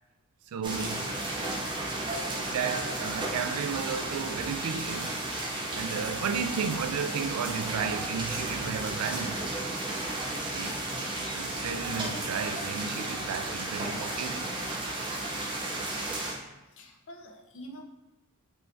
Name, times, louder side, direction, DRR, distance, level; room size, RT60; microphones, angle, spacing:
voice 1, 0.5-1.0 2.5-5.2 5.7-10.0 10.5-10.8 11.3-14.7, right 6 dB, 85° right, 0.3 m, -34 dB
sound 1, 0.6-16.3, right 2 dB, 20° right, 0.7 m, -33 dB
voice 2, 16.7-17.8, equal, 60° left, 0.6 m, -46 dB
5.5 x 3.1 x 2.6 m
head